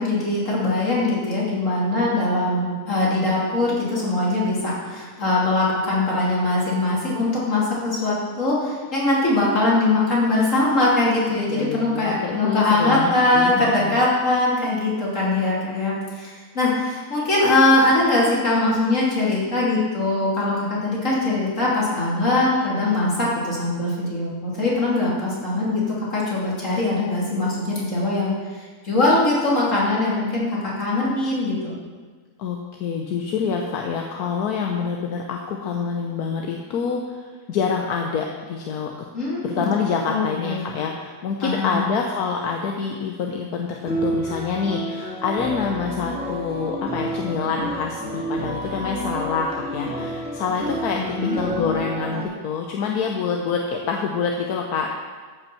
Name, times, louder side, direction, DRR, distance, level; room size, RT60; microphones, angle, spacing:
voice 1, 0.0-25.8 26.1-28.3 28.8-31.7 39.1-39.7 40.1-40.6 41.4-41.8 50.9-51.4, left 2 dB, 55° left, -6 dB, 3.3 m, -21 dB
voice 2, 11.5-14.0 32.4-38.9 39.4-54.9, left 5 dB, 80° left, 1 dB, 1.3 m, -26 dB
sound 1, 43.8-52.2, right 1 dB, 5° right, 1.7 m, -29 dB
14.0 x 5.4 x 5.7 m, 1.5 s
omnidirectional pair, 1.6 m